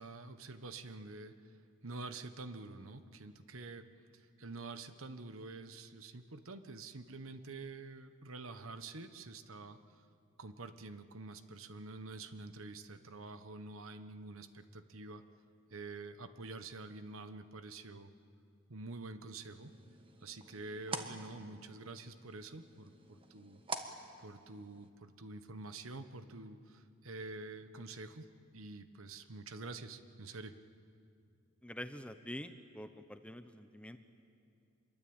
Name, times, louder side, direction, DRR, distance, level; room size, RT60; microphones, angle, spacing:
voice 1, 0.0-1.3 1.8-3.9 4.1-10.0 10.4-15.2 15.7-18.1 18.7-19.7 20.2-23.6 24.2-28.3 28.5-30.5, right 3 dB, 75° right, 10 dB, 1.2 m, -47 dB
sound 1, 19.5-24.9, right 3 dB, 25° right, 1.3 m, -47 dB
voice 2, 31.6-34.0, left 1 dB, 5° left, 8 dB, 0.9 m, -46 dB
26.0 x 22.5 x 8.8 m, 2.4 s
head